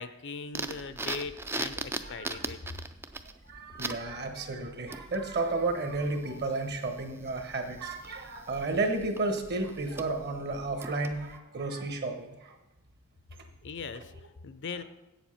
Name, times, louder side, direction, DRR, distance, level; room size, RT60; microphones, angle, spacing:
voice 1, 0.0-2.6 13.6-14.8, left 5 dB, 55° left, 12 dB, 0.5 m, -40 dB
sound 1, 0.5-11.4, right 3 dB, 10° right, 0.3 m, -41 dB
voice 2, 2.0-2.4 3.5-12.5, right 3 dB, 45° right, 6 dB, 1.2 m, -32 dB
8.1 x 7.3 x 5.6 m, 0.99 s
head